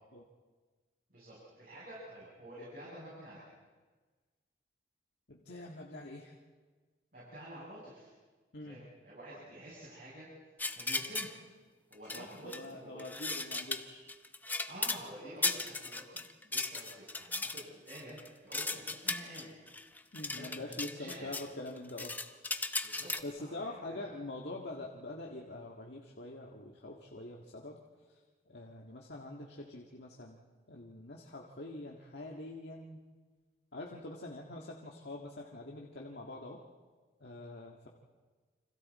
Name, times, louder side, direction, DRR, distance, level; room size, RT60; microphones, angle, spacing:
voice 1, 1.1-3.5 7.1-8.1 8.6-10.3 10.7-11.3 11.9-13.2 14.7-19.5 20.2-21.3 22.8-23.1 23.4-24.1, right 1 dB, 50° right, -7 dB, 7.3 m, -49 dB
voice 2, 5.3-6.3 8.5-8.8 12.1-14.0 20.1-22.2 23.2-27.8 28.1-33.0 33.7-36.6 37.2-37.9, left 2 dB, 70° left, -2 dB, 1.8 m, -45 dB
sound 1, 10.6-11.3 11.9-12.7 13.0-15.0 15.4-21.5 21.8-23.2, left 3 dB, 10° left, 0.6 m, -36 dB
29.0 x 26.0 x 4.3 m, 1.4 s
head